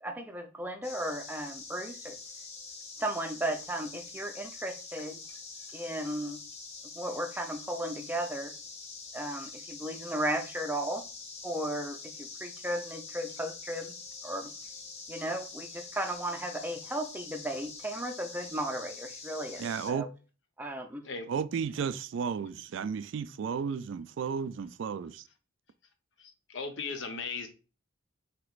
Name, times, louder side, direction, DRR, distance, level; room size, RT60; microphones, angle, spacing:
voice 1, 0.0-2.2 3.0-5.2 5.7-6.4 7.0-8.5 9.1-11.0 11.4-13.9 14.2-14.5 15.1-20.1 20.6-21.0, right 1 dB, 10° right, 0.5 m, -35 dB
sound 1, 0.8-19.9, left 4 dB, 30° left, 0.8 m, -45 dB
voice 2, 19.6-20.1 21.3-25.2, right 6 dB, 65° right, 0.3 m, -33 dB
voice 3, 26.2-27.5, left 4 dB, 60° left, 0.8 m, -37 dB
6.1 x 3.0 x 2.3 m
head